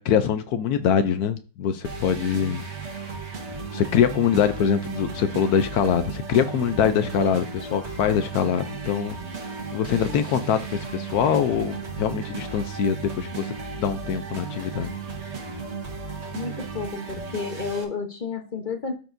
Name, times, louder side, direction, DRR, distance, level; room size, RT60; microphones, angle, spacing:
voice 1, 0.0-2.6 3.7-9.2 9.4-14.9, left 8 dB, 75° left, 10 dB, 0.8 m, -24 dB
sound 1, 1.8-17.8, right 4 dB, 40° right, 1.5 m, -35 dB
voice 2, 9.9-10.2 16.3-18.9, left 5 dB, 50° left, 4 dB, 0.5 m, -31 dB
13.0 x 4.5 x 2.6 m, 0.36 s
omnidirectional pair, 2.1 m